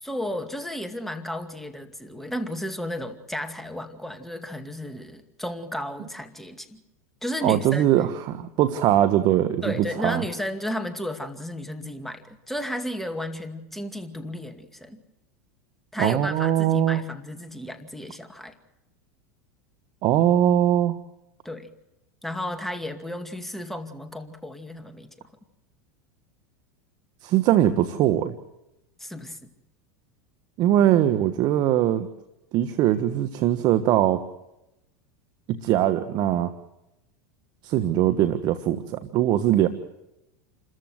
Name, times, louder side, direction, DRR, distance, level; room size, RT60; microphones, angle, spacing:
voice 1, 0.0-6.8 7.2-7.8 9.6-15.0 15.9-18.5 21.4-21.7 22.2-25.3 29.0-29.5, left 1 dB, 5° left, 6 dB, 2.3 m, -33 dB
voice 2, 7.4-9.7 10.0-10.2 16.0-17.0 20.0-21.0 27.2-28.3 30.6-32.1 32.5-34.2 35.5-36.5 37.6-39.7, right 12 dB, 50° right, 11 dB, 1.4 m, -21 dB
29.0 x 14.5 x 7.9 m, 0.91 s
hypercardioid pair, 100°, 9 cm